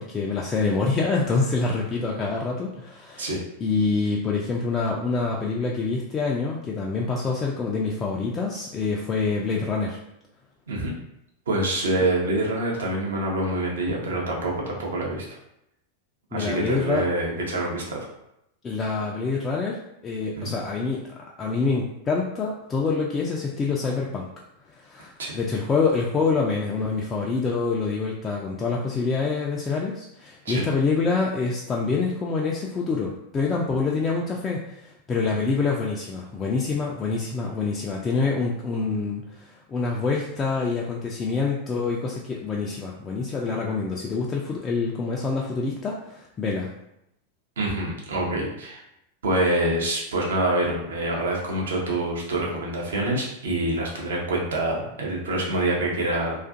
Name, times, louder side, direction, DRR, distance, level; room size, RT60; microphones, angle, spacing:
voice 1, 0.0-3.4 3.6-10.0 16.3-17.0 18.6-24.3 24.7-46.7, left 4 dB, 20° left, -2 dB, 0.3 m, -26 dB
voice 2, 11.5-15.2 16.3-18.1 20.3-20.5 25.2-25.3 30.4-30.6 47.6-48.8 49.2-56.4, right 1 dB, 65° right, -2 dB, 0.7 m, -26 dB
2.4 x 2.4 x 2.5 m, 0.80 s
figure-of-eight pair, 90°, 0 cm